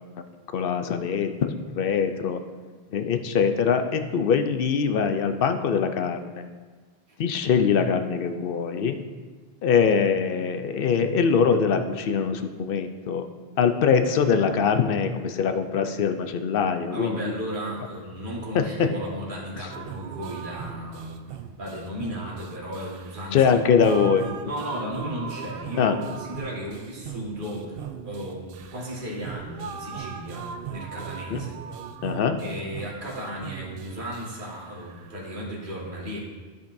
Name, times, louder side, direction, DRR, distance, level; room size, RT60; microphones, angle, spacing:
voice 1, 0.5-2.4 2.9-6.2 7.2-9.0 9.6-13.3 13.6-17.2 18.5-18.9 23.3-24.3 25.8-25.9 31.3-31.4 32.0-32.4, left 6 dB, 65° left, 7 dB, 0.8 m, -23 dB
voice 2, 16.9-21.1 21.6-23.5 23.9-24.0 24.4-27.8 28.0-31.6 32.4-36.2, equal, 55° right, -4 dB, 1.8 m, -35 dB
sound 1, 19.7-35.5, right 7 dB, 70° right, 0.7 m, -39 dB
13.0 x 5.2 x 2.6 m, 1.4 s
omnidirectional pair, 1.0 m